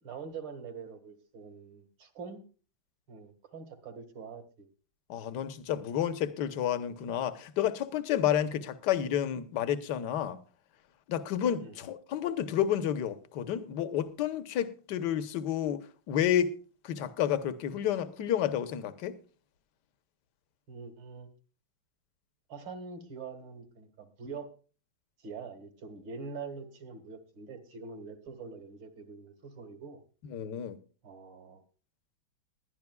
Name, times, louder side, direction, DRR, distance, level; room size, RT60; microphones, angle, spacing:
voice 1, 0.0-2.4 3.1-4.7 11.6-11.8 20.7-21.3 22.5-24.5 25.2-30.0 31.0-31.6, right 5 dB, 65° right, 2.5 m, -44 dB
voice 2, 5.1-10.4 11.1-15.8 16.1-16.6 16.8-19.2 30.3-30.8, left 10 dB, 60° left, 1.4 m, -30 dB
20.5 x 11.5 x 2.3 m
omnidirectional pair, 2.2 m